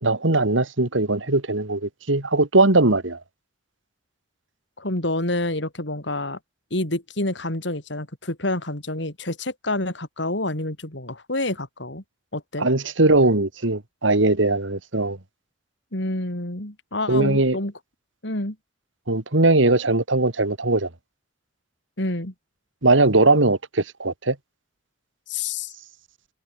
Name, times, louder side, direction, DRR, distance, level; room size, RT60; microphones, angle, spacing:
voice 1, 0.0-3.2 12.6-15.2 17.1-17.6 19.1-20.9 22.8-24.4, right 2 dB, 85° right, 2.4 m, -20 dB
voice 2, 4.8-6.4 6.7-12.0 12.3-12.7 15.9-17.7 18.2-18.6 22.0-22.3 25.3-25.7, left 2 dB, 65° left, 4.4 m, -28 dB
head